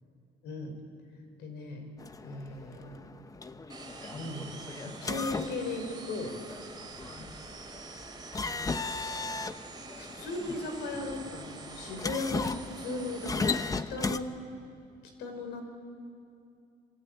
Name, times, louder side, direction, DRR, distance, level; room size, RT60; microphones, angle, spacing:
voice 1, 0.4-0.7 1.4-1.8 2.2-3.0 4.1-4.5 4.8-6.3 7.1-7.3 8.9-9.4 10.0-14.3 15.2-15.6, left 2 dB, 85° left, 5 dB, 5.2 m, -37 dB
sound 1, 2.0-14.2, left 4 dB, 20° left, 0.9 m, -37 dB
sound 2, 3.7-13.7, right 4 dB, 25° right, 3.1 m, -47 dB
27.0 x 22.5 x 9.4 m, 2.5 s
cardioid pair, 110°, 17 cm